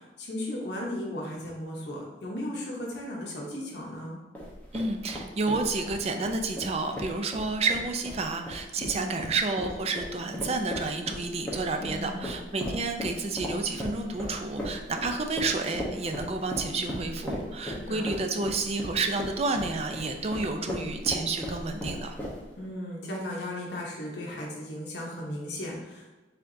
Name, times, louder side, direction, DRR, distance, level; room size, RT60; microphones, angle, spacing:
voice 1, 0.0-4.2 8.8-9.3 11.8-12.3 17.6-18.1 22.6-26.2, left 1 dB, 70° left, -3 dB, 0.8 m, -36 dB
sound 1, 4.3-22.6, equal, 10° left, 0.8 m, -37 dB
voice 2, 4.7-22.2, right 3 dB, 35° right, 5 dB, 0.4 m, -30 dB
4.5 x 3.6 x 2.6 m, 1.2 s
head